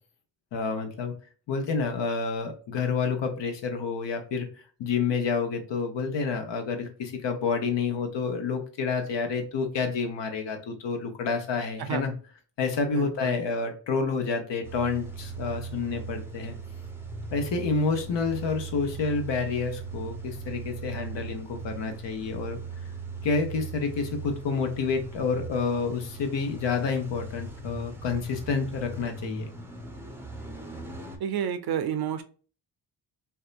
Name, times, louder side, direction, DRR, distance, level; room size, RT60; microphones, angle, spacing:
voice 1, 0.5-1.1 1.5-4.5 4.8-12.1 12.6-16.6 17.3-22.6 23.2-29.5, left 5 dB, 65° left, 5 dB, 0.9 m, -29 dB
voice 2, 12.9-13.3 31.2-32.2, right 8 dB, 55° right, 9 dB, 0.5 m, -30 dB
Car / Engine starting / Idling, 14.6-31.2, right 4 dB, 5° right, 0.6 m, -39 dB
2.7 x 2.2 x 2.4 m, 0.39 s
cardioid pair, 70°, 46 cm